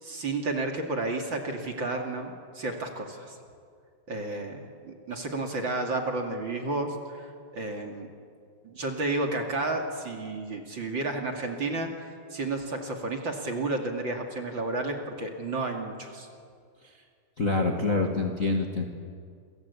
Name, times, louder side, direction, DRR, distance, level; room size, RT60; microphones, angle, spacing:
voice 1, 0.0-3.4 4.1-8.1 8.6-11.9 12.3-16.3, right 2 dB, 35° right, 3 dB, 2.4 m, -32 dB
voice 2, 17.4-18.8, left 3 dB, 70° left, 2 dB, 0.7 m, -26 dB
28.5 x 24.5 x 8.4 m, 2.2 s
omnidirectional pair, 4.8 m